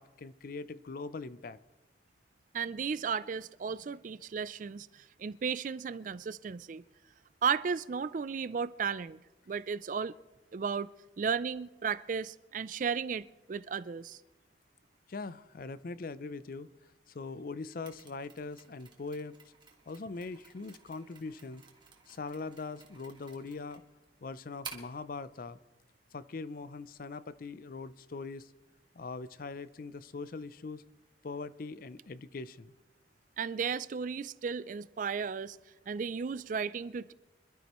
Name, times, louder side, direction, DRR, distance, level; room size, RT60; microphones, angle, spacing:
voice 1, 0.0-1.6 15.1-16.7 17.1-19.4 19.9-21.6 22.1-23.8 24.2-25.6 26.1-28.5 28.9-30.8 31.2-32.7, left 3 dB, 50° left, 0.5 m, -41 dB
voice 2, 2.5-6.8 7.4-9.2 9.5-10.1 10.5-10.9 11.2-14.2 33.4-35.6 35.9-37.1, right 6 dB, 45° right, 0.3 m, -34 dB
Mechanisms, 17.9-25.0, right 5 dB, 25° right, 1.7 m, -53 dB
26.0 x 12.5 x 3.0 m
head